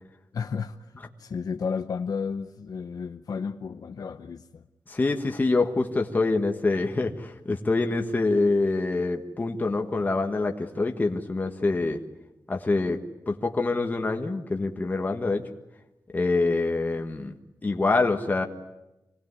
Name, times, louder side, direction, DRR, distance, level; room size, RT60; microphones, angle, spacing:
voice 1, 0.3-4.6, left 5 dB, 65° left, 0.8 m, -33 dB
voice 2, 4.9-12.0 12.5-13.0 13.3-15.4 16.1-17.3 17.6-18.5, left 3 dB, 25° left, 1.5 m, -25 dB
26.0 x 19.0 x 9.7 m
wide cardioid pair, 170°, 7 cm